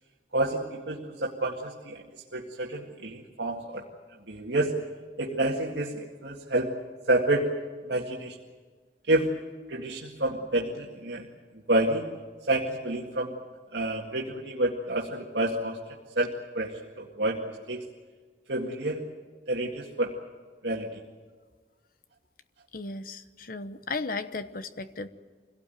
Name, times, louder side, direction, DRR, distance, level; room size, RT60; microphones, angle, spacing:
voice 1, 0.3-3.8 4.3-4.8 5.2-6.7 7.1-7.5 7.8-8.4 9.1-9.4 9.7-11.3 11.5-12.1 12.5-13.4 13.7-15.8 16.2-17.4 17.7-17.8 18.5-19.0 19.5-20.2 20.6-21.0, right 1 dB, 75° right, -2 dB, 2.0 m, -29 dB
voice 2, 22.7-25.1, left 3 dB, 50° left, 11 dB, 1.1 m, -35 dB
25.5 x 17.5 x 9.2 m, 1.5 s
head